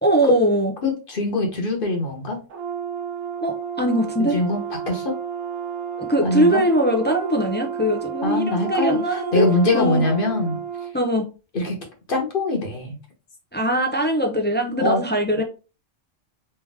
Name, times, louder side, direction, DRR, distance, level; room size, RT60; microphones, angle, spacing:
voice 1, 0.0-0.7 3.4-4.4 6.0-9.5 9.7-10.0 10.9-11.3 13.5-15.4, equal, 15° left, 1 dB, 0.3 m, -21 dB
voice 2, 0.8-2.4 4.2-5.1 6.2-6.6 8.2-10.6 11.5-11.8 12.1-13.0 14.8-15.0, left 2 dB, 50° left, 2 dB, 1.3 m, -23 dB
Brass instrument, 2.5-10.9, right 7 dB, 75° right, 1.1 m, -31 dB
3.3 x 3.1 x 3.4 m, 0.32 s
omnidirectional pair, 1.3 m